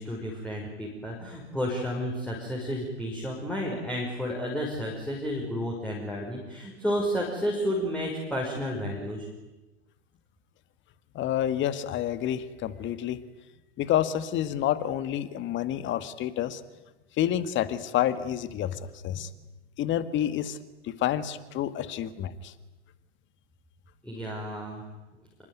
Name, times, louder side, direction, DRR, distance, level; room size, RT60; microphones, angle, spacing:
voice 1, 0.0-9.3 24.0-24.8, equal, 5° left, -3 dB, 6.1 m, -31 dB
voice 2, 11.2-13.2 13.8-16.6 17.2-18.8 19.0-19.3 19.8-20.6 21.0-22.5, left 11 dB, 35° left, 13 dB, 1.9 m, -28 dB
27.0 x 23.5 x 9.4 m, 1.1 s
hypercardioid pair, 100°, 35 cm